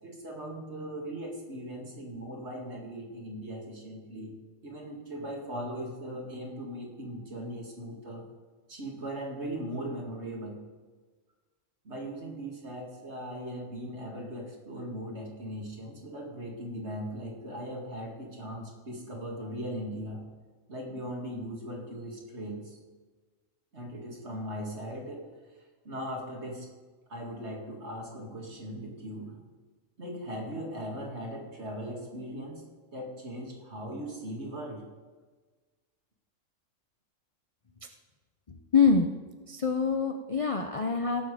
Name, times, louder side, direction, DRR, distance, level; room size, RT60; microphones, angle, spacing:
voice 1, 0.0-4.4 4.6-8.3 8.7-10.6 11.8-20.2 20.7-22.8 23.7-25.3 25.8-26.7 27.1-29.4 30.0-32.6 32.9-34.8, equal, 55° right, 0 dB, 2.5 m, -39 dB
voice 2, 38.5-39.1 39.5-41.3, left 5 dB, 40° left, 5 dB, 0.5 m, -25 dB
17.0 x 7.2 x 5.0 m, 1.4 s
omnidirectional pair, 1.4 m